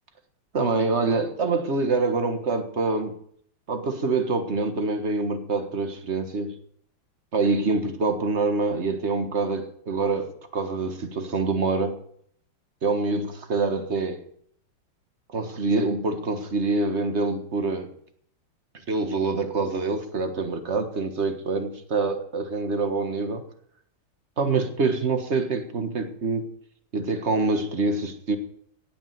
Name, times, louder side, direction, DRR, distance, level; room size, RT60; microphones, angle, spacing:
voice 1, 0.5-3.2 3.7-6.6 7.3-12.0 12.8-14.2 15.3-17.9 18.9-23.4 24.4-26.4 26.9-28.4, right 3 dB, 35° right, 1.6 m, -25 dB
17.5 x 6.3 x 9.4 m
omnidirectional pair, 2.3 m